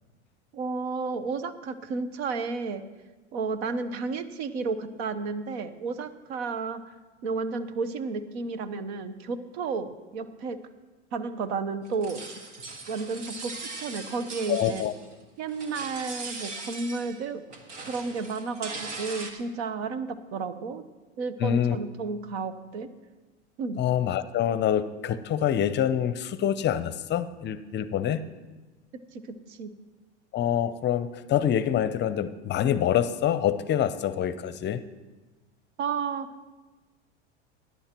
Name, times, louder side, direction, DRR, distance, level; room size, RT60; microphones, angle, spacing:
voice 1, 0.5-2.8 3.3-6.8 7.2-10.6 11.1-12.2 12.9-14.8 15.4-17.4 17.9-20.8 21.2-22.9 23.6-23.8 29.1-29.7 35.8-36.3, right 4 dB, 70° right, 12 dB, 1.1 m, -32 dB
sound 1, 11.9-15.2 15.5-17.2 17.5-19.3, right 3 dB, 90° right, 1.7 m, -40 dB
voice 2, 14.5-14.9 21.4-21.8 23.8-28.2 30.3-34.8, left 10 dB, 30° left, 13 dB, 0.6 m, -26 dB
20.0 x 10.5 x 3.0 m, 1.2 s
hypercardioid pair, 95°, 35 cm